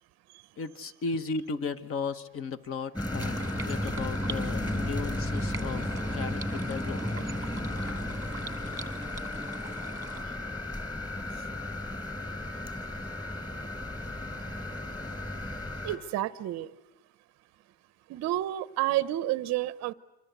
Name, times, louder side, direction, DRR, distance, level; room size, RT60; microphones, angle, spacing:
voice 1, 0.6-7.3, left 4 dB, 30° left, 13 dB, 1.1 m, -36 dB
sound 1, 2.9-16.0, left 1 dB, 10° left, 3.7 m, -34 dB
sound 2, 3.2-10.2, right 4 dB, 5° right, 1.7 m, -44 dB
voice 2, 15.8-16.7 18.1-19.9, right 14 dB, 35° right, 16 dB, 0.8 m, -30 dB
27.5 x 24.5 x 8.1 m, 1.0 s
supercardioid pair, 145°, 47 cm